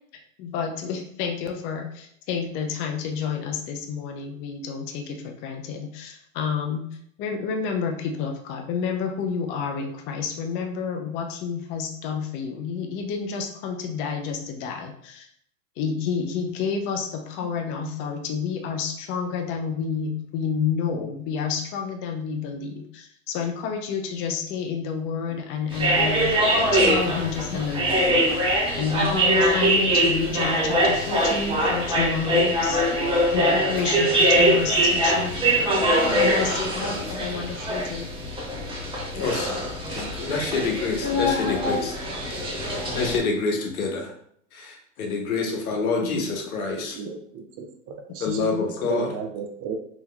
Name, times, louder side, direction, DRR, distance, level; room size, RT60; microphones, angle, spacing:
voice 1, 0.4-6.9 7.2-15.3 15.8-28.4 28.8-32.8 33.3-35.3 36.1-38.1 46.0-46.4 48.3-48.7, left 6 dB, 30° left, 4 dB, 0.4 m, -29 dB
sound 1, 25.7-43.2, right 1 dB, 10° right, 0.8 m, -23 dB
voice 2, 39.1-39.6 39.9-41.9 42.9-44.1 44.5-47.0 48.2-49.1, left 4 dB, 85° left, 1 dB, 1.0 m, -27 dB
voice 3, 46.8-48.4 48.9-49.7, right 6 dB, 35° right, 3 dB, 0.5 m, -35 dB
3.5 x 2.9 x 2.2 m, 0.66 s
hypercardioid pair, 115°, 42 cm